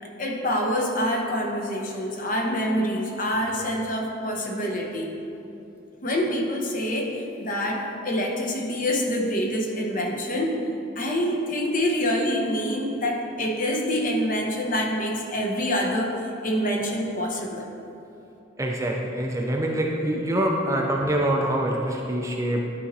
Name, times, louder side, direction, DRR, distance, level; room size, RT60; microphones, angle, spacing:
voice 1, 0.0-5.1 6.0-10.6 11.0-17.7, equal, 45° left, 0 dB, 1.0 m, -26 dB
voice 2, 18.6-22.6, right 1 dB, 15° right, 0 dB, 0.5 m, -25 dB
11.5 x 4.2 x 4.2 m, 2.9 s
head